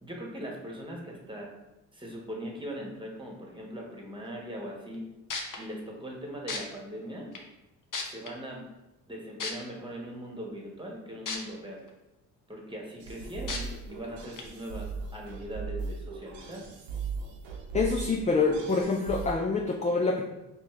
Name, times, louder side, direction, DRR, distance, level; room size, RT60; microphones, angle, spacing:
voice 1, 0.0-1.5 1.9-5.0 5.6-7.3 8.0-8.6 9.1-11.8 12.5-16.6, equal, 10° right, -1 dB, 1.3 m, -40 dB
sound 1, 4.9-5.0 5.3-5.6 6.5-6.6 7.3-7.4 7.9-8.3 9.4-9.5 11.3-11.4 11.9-12.0 13.5-13.6 14.4-14.5, left 4 dB, 45° left, 0.9 m, -33 dB
sound 2, 13.0-19.3, right 5 dB, 70° right, 0.9 m, -38 dB
voice 2, 17.7-20.2, left 4 dB, 15° left, 1 dB, 0.3 m, -26 dB
4.3 x 2.8 x 3.2 m, 0.96 s
hypercardioid pair, 45°, 46 cm